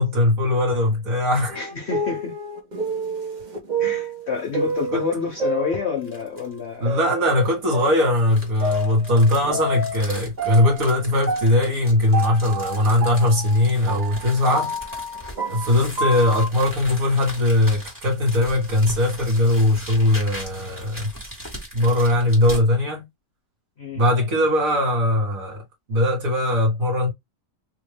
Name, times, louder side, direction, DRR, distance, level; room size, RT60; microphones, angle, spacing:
voice 1, 0.0-1.6 4.7-5.0 6.8-14.7 15.5-21.1 21.7-23.1 23.9-25.6 25.9-27.1, left 1 dB, 55° right, 1.8 m, -20 dB
voice 2, 1.5-2.3 3.8-7.0 23.8-24.0, left 6 dB, 50° left, 0.9 m, -28 dB
sound 1, 1.5-6.3 6.9-10.1 10.4-16.5, right 2 dB, 35° right, 0.7 m, -29 dB
sound 2, 4.3-4.9 5.3-5.4 6.0-6.6 7.4-22.6, equal, 10° right, 1.3 m, -39 dB
3.6 x 2.5 x 3.3 m
omnidirectional pair, 1.8 m